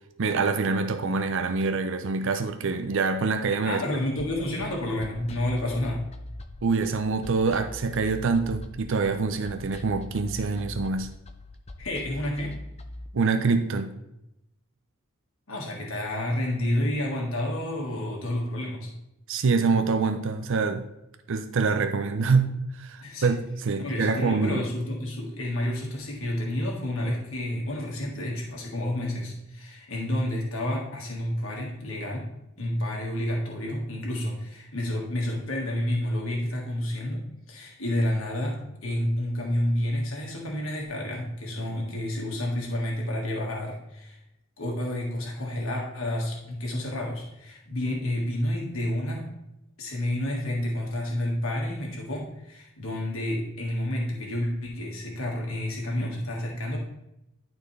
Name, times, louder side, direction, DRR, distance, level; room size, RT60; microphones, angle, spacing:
voice 1, 0.2-3.8 6.6-11.1 13.1-13.9 19.3-20.8 21.3-24.7, right 4 dB, 65° right, 8 dB, 0.6 m, -25 dB
voice 2, 3.6-6.1 11.8-12.6 15.5-18.9 23.0-23.3 23.8-32.3 32.6-44.2 44.6-49.3 49.8-56.8, left 1 dB, 70° left, -2 dB, 1.6 m, -30 dB
sound 1, 4.2-13.1, left 1 dB, 30° left, 0.5 m, -42 dB
11.5 x 4.4 x 3.2 m, 0.87 s
head